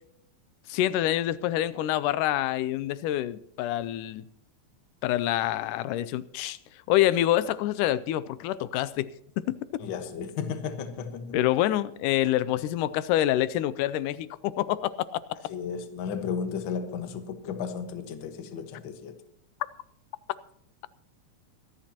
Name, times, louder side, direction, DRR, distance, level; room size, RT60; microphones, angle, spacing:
voice 1, 0.7-4.2 5.0-6.6 6.9-9.1 9.5-9.6 11.3-14.9, left 13 dB, 90° left, 2.1 m, -26 dB
voice 2, 9.8-11.4 15.5-19.2, left 6 dB, 50° left, 1.6 m, -34 dB
24.0 x 10.5 x 2.9 m
omnidirectional pair, 3.6 m